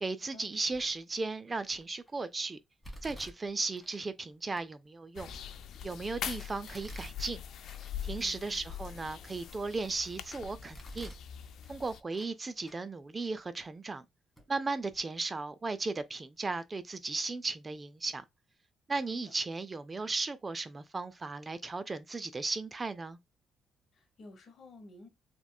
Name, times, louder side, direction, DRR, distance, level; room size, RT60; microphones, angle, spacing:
voice 1, 0.0-2.6 3.0-5.3 5.8-7.4 8.0-11.1 11.7-14.1 14.5-18.2 18.9-23.2, right 3 dB, 30° right, 0.3 m, -36 dB
Domestic sounds home sounds, 0.7-1.1 1.7-2.1 2.8-4.0 4.6-4.7 5.2-6.0 6.7-8.0 8.4-8.5 9.1-10.0 10.5-11.3 11.6-12.4 12.6-12.8 13.6-13.7 14.4-14.5 14.8-15.0, equal, 5° left, 1.4 m, -50 dB
sound 1, 5.2-12.0, left 9 dB, 75° left, 0.3 m, -43 dB
voice 2, 8.1-8.6 23.9-25.1, left 2 dB, 55° left, 1.1 m, -52 dB
3.1 x 2.9 x 2.3 m
cardioid pair, 90°, 0 cm